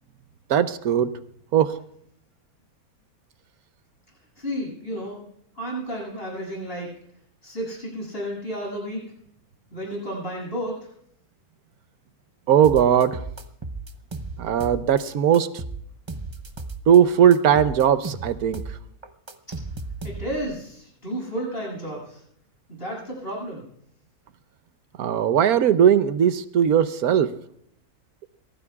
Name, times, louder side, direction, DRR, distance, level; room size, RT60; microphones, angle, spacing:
voice 1, 0.5-1.1 1.5-1.7 12.5-13.2 14.4-15.5 16.9-18.6 25.0-27.3, right 9 dB, 75° right, 12 dB, 1.3 m, -18 dB
voice 2, 4.4-5.2 5.5-6.9 7.4-9.1 9.7-10.8 19.5-19.6 20.0-22.2 22.7-23.7, equal, 40° left, -3 dB, 8.3 m, -32 dB
sound 1, 12.6-15.0 15.3-17.0 17.3-20.5, right 3 dB, 25° right, 0.6 m, -35 dB
24.0 x 17.0 x 2.4 m, 0.68 s
omnidirectional pair, 1.6 m